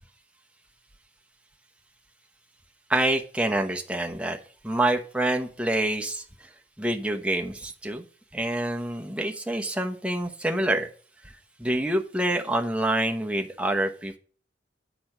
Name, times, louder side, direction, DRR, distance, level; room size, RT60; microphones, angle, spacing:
voice 1, 2.9-4.4 4.6-6.2 6.8-8.0 8.3-10.9 11.6-14.2, right 1 dB, 5° right, 2 dB, 1.0 m, -26 dB
8.5 x 6.0 x 5.5 m, 0.42 s
head